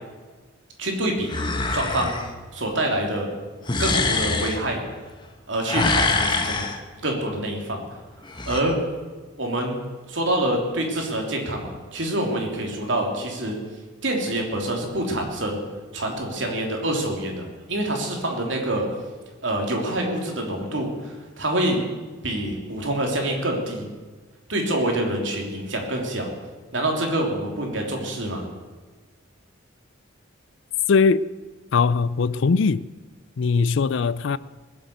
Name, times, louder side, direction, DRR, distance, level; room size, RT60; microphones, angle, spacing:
voice 1, 0.8-2.2 2.5-3.3 3.8-4.8 5.5-6.7 7.0-7.8 8.5-8.7 9.4-9.8 10.1-13.6 14.0-15.6 15.9-18.9 19.4-21.8 22.2-23.9 24.5-26.3 26.7-28.5, right 1 dB, 65° right, 3.1 m, -26 dB
sound 1, 1.3-2.3 3.7-4.6 5.6-6.8 8.2-8.6, left 3 dB, 25° left, 1.1 m, -24 dB
voice 2, 30.9-31.3 31.7-32.8 33.4-34.4, left 5 dB, 65° left, 0.4 m, -20 dB
20.5 x 7.8 x 8.0 m
head